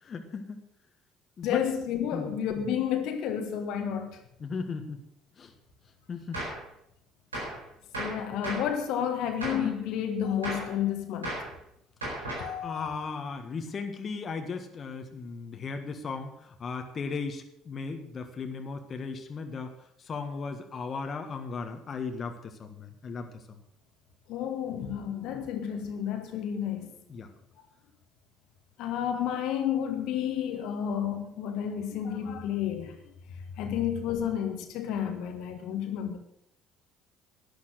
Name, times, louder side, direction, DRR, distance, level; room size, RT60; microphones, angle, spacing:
voice 1, 0.0-0.6 1.4-1.6 2.1-2.4 4.4-5.0 5.4-5.5 6.1-6.4 12.6-23.4 27.1-27.3, left 4 dB, 40° left, 1.5 m, -36 dB
voice 2, 1.4-4.2 8.0-11.4 12.4-13.0 24.3-26.9 28.8-32.9 33.6-36.2, left 9 dB, 65° left, 1.6 m, -31 dB
Gunshot gunfire, 6.3-6.6 7.3-7.6 7.9-8.7 9.4-9.7 10.4-10.7 11.2-11.5 12.0-12.6, right 1 dB, 90° right, 4.2 m, -35 dB
11.5 x 10.5 x 6.4 m
hypercardioid pair, 55°, 0 cm